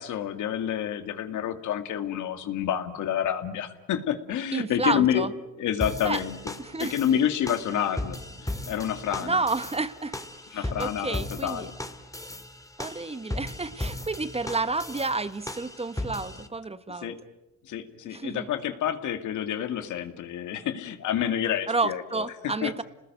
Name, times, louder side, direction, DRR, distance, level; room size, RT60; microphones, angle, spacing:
voice 1, 0.0-5.3 5.6-6.5 6.8-9.4 10.5-11.7 16.9-17.2 17.6-22.3 22.6-22.8, left 10 dB, 80° left, 8 dB, 2.3 m, -29 dB
voice 2, 4.5-5.3 6.0-6.2 6.6-6.9 9.2-10.2 10.5-11.7 12.8-17.1 18.1-18.5 21.7-22.8, right 3 dB, 20° right, 13 dB, 1.2 m, -30 dB
sound 1, 5.8-16.5, left 1 dB, 10° left, 2.4 m, -37 dB
30.0 x 20.0 x 9.2 m, 0.99 s
cardioid pair, 90°, 30 cm